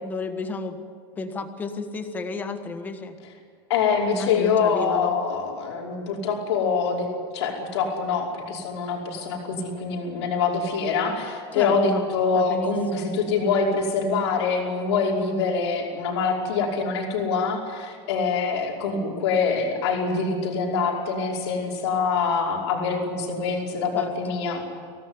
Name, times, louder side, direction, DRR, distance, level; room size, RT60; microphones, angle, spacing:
voice 1, 0.0-0.8 1.2-3.2 4.1-5.1 11.5-12.0 12.4-13.1 23.9-24.4, left 3 dB, 15° left, 7 dB, 1.5 m, -32 dB
voice 2, 3.7-7.1 7.3-24.6, left 5 dB, 85° left, -1 dB, 5.3 m, -25 dB
24.5 x 17.5 x 9.8 m, 2.3 s
supercardioid pair, 175°, 14 cm